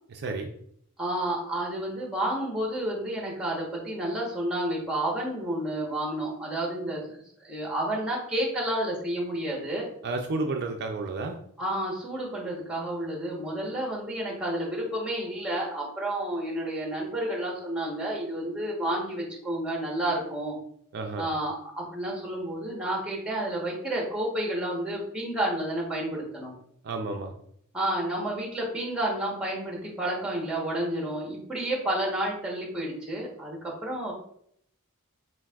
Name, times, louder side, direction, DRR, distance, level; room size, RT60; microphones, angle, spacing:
voice 1, 0.1-0.5 10.0-11.4 20.9-21.3 26.8-27.3, right 3 dB, 50° right, 3 dB, 0.4 m, -31 dB
voice 2, 1.0-7.2 7.4-9.9 11.6-20.6 21.2-26.5 27.7-34.1, right 1 dB, 5° right, -2 dB, 1.2 m, -30 dB
7.3 x 2.6 x 2.4 m, 0.68 s
head